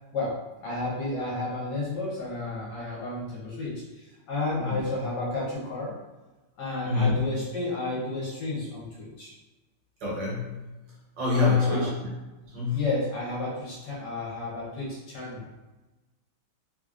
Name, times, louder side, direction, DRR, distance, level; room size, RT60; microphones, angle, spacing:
voice 1, 0.6-5.9 6.6-9.3 11.3-11.9 12.7-15.5, left 2 dB, 60° left, -6 dB, 1.4 m, -32 dB
voice 2, 6.8-7.2 10.0-10.6 11.2-11.9 12.4-12.9, left 4 dB, 65° right, -5 dB, 1.5 m, -25 dB
3.7 x 3.1 x 2.4 m, 1.1 s
omnidirectional pair, 2.3 m